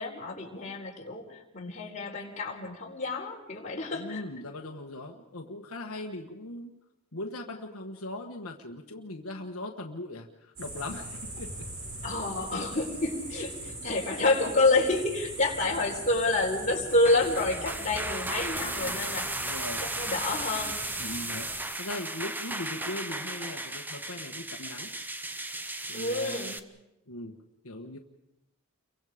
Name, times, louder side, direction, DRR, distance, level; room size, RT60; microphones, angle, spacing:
voice 1, 0.0-4.2 4.7-4.8 12.0-19.5 19.8-20.8 25.9-26.6, left 2 dB, 35° left, -1 dB, 4.2 m, -28 dB
voice 2, 3.9-6.7 7.1-11.5 18.5-19.1 19.3-19.9 21.0-21.5 21.8-24.9 25.9-26.5 27.1-27.3 27.6-28.0, left 1 dB, 75° left, 2 dB, 1.5 m, -39 dB
sound 1, 10.6-21.6, right 2 dB, 85° right, 7.4 m, -40 dB
sound 2, 16.9-26.6, right 2 dB, 10° right, 0.8 m, -36 dB
29.5 x 24.0 x 5.1 m, 0.91 s
head